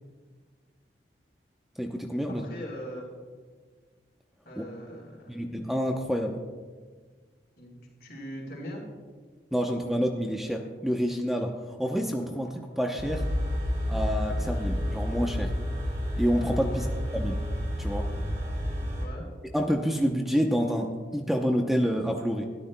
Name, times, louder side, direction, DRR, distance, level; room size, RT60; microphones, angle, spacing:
voice 1, 1.8-2.5 4.6-4.7 5.3-6.4 9.5-13.3 13.9-15.6 16.2-16.9 17.1-17.5 17.8-18.1 19.5-22.5, equal, ahead, 2 dB, 0.7 m, -28 dB
voice 2, 2.3-3.1 4.4-5.5 7.6-8.8 16.7-17.0 19.0-19.3, equal, 65° left, -1 dB, 3.9 m, -41 dB
sound 1, 13.0-19.0, equal, 45° right, 2.4 m, -30 dB
21.0 x 13.5 x 2.2 m, 1.5 s
head